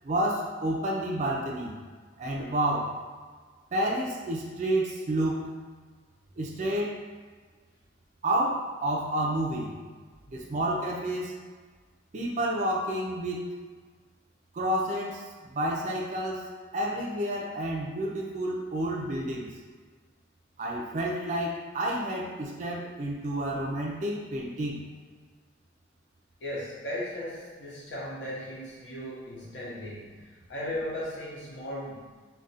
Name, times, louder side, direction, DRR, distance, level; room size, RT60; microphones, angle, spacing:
voice 1, 0.0-1.8 2.2-2.9 3.7-5.5 6.4-7.0 8.2-9.8 10.3-11.4 12.1-13.5 14.5-16.5 16.7-19.5 20.6-24.8, right 1 dB, 40° right, -3 dB, 0.3 m, -30 dB
voice 2, 26.4-30.2 30.5-32.1, left 1 dB, 70° left, -6 dB, 0.8 m, -37 dB
2.4 x 2.2 x 3.9 m, 1.5 s
head